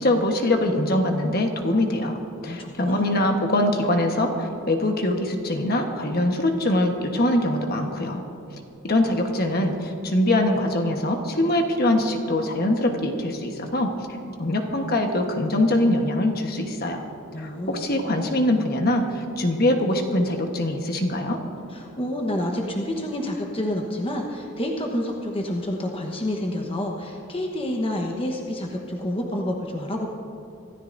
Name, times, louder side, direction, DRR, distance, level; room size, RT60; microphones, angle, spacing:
voice 1, 0.0-2.2 2.4-8.2 8.8-13.9 14.4-17.0 17.4-21.4, left 1 dB, 45° left, 3 dB, 1.2 m, -23 dB
voice 2, 2.5-3.0 17.3-17.9 21.7-30.1, left 1 dB, 25° left, 1 dB, 1.1 m, -28 dB
25.0 x 13.5 x 2.6 m, 2.8 s
head